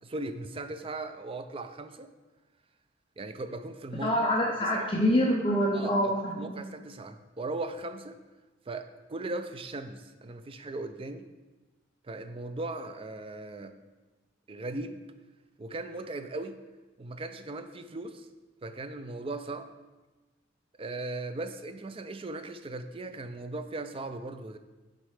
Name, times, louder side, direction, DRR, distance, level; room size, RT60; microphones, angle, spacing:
voice 1, 0.0-2.1 3.2-4.1 4.7-4.9 5.7-6.1 6.4-8.2 8.7-11.3 12.0-13.7 14.5-15.0 15.6-16.6 17.0-18.3 18.6-19.7 20.8-24.6, right 2 dB, 30° right, 9 dB, 0.4 m, -38 dB
voice 2, 4.0-6.5, equal, 25° left, -2 dB, 0.7 m, -26 dB
7.7 x 4.2 x 4.8 m, 1.2 s
head